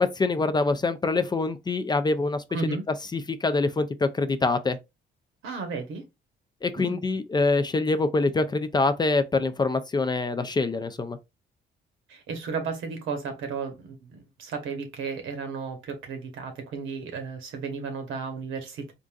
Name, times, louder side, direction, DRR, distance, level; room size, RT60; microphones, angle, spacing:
voice 1, 0.0-2.4 3.1-4.8 6.6-11.2, left 3 dB, 20° left, 0.3 m, -25 dB
voice 2, 2.5-2.8 5.4-6.0 6.8-7.0 12.1-18.9, right 5 dB, 85° right, 1.0 m, -34 dB
3.6 x 2.5 x 2.3 m
cardioid pair, 90°, 20 cm